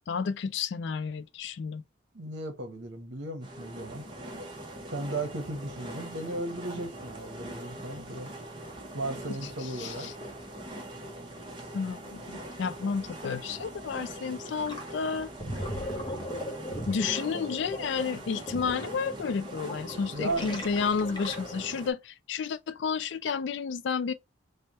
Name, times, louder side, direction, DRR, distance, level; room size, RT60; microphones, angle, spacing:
voice 1, 0.1-1.8 9.4-10.1 11.7-15.3 16.9-24.1, left 5 dB, 65° left, 0.3 m, -31 dB
voice 2, 2.1-4.1 4.9-8.3 8.9-10.1 20.1-20.5, right 2 dB, 70° right, 1.0 m, -35 dB
sound 1, 3.4-21.9, right 1 dB, 25° right, 0.8 m, -42 dB
Gurgling, 14.7-14.9 15.2-21.7, equal, 20° left, 0.7 m, -38 dB
3.3 x 2.2 x 4.1 m
head